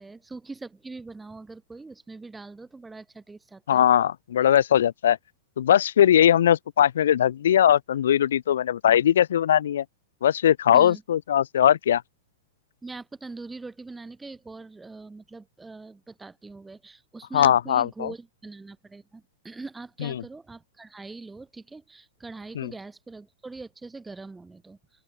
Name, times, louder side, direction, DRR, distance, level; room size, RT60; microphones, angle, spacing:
voice 1, 0.0-3.9 10.7-11.0 12.8-24.8, right 3 dB, 10° right, 2.1 m, -42 dB
voice 2, 3.7-5.2 5.6-9.8 10.2-12.0 17.3-18.1 20.0-20.1 22.5-22.7, left 10 dB, 60° left, 0.5 m, -20 dB
open air
figure-of-eight pair, 100°, 0 cm